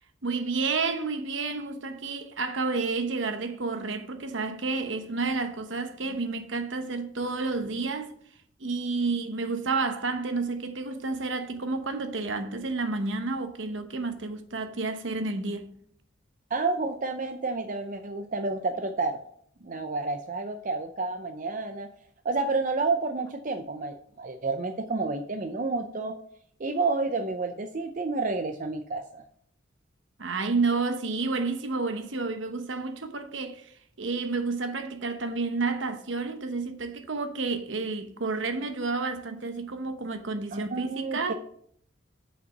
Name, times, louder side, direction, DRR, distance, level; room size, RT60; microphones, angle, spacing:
voice 1, 0.2-8.1 8.6-15.7 30.2-33.7 34.0-41.3, right 3 dB, 70° right, 0.9 m, -30 dB
voice 2, 16.5-19.2 19.6-21.9 22.2-26.2 26.6-29.2 40.5-41.3, right 3 dB, 40° right, 0.5 m, -30 dB
6.8 x 5.2 x 7.2 m
head